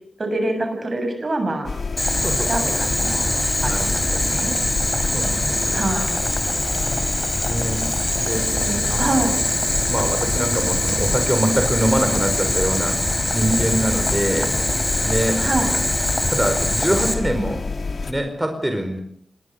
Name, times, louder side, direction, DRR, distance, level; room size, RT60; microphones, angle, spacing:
voice 1, 0.2-1.7 2.5-3.3 3.6-4.6 5.7-6.2 8.5-9.4 15.4-15.7, right 2 dB, 55° right, 6 dB, 7.7 m, -25 dB
sound 1, 1.6-18.1, left 4 dB, 70° left, 3.1 m, -29 dB
Boiling, 2.0-17.1, left 1 dB, 25° left, 4.5 m, -23 dB
voice 2, 5.1-5.8 7.5-7.8 8.2-8.5 8.9-9.3 9.9-14.6 15.0-15.4 16.3-17.7 18.1-19.0, right 1 dB, 15° right, 6 dB, 4.8 m, -24 dB
26.5 x 20.0 x 6.7 m, 0.63 s
cardioid pair, 45°, 0 cm